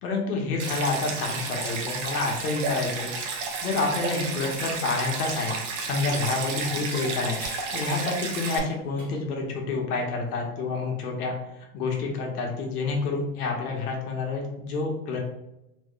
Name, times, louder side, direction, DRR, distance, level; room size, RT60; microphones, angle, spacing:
voice 1, 0.0-3.1 3.6-7.4 7.7-11.4 11.7-15.2, left 3 dB, 75° left, 1 dB, 1.0 m, -28 dB
Stream, 0.6-8.6, right 4 dB, 55° right, 0.7 m, -32 dB
sound 1, 6.7-12.4, equal, 5° left, 0.6 m, -51 dB
3.0 x 2.2 x 3.6 m, 0.90 s
supercardioid pair, 150°, 45 cm